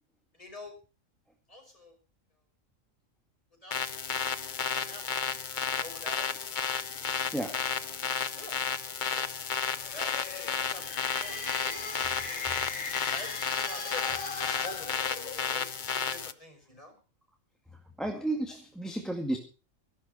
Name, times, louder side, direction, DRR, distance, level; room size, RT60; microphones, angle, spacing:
voice 1, 0.3-0.7 1.5-2.0 3.6-4.4 4.7-5.3 5.8-6.3 8.4-8.6 9.0-11.9 12.3-12.4 13.1-13.3 13.5-15.0 15.5-16.9 18.5-18.6, left 1 dB, 25° left, 3 dB, 5.9 m, -47 dB
sound 1, 3.7-16.3, left 6 dB, 40° left, 0.9 m, -33 dB
voice 2, 7.3-7.7 18.0-19.4, right 1 dB, ahead, 3 dB, 1.9 m, -32 dB
sound 2, 9.7-15.7, left 4 dB, 85° left, 2.3 m, -39 dB
16.5 x 11.5 x 5.5 m, 0.35 s
omnidirectional pair, 1.4 m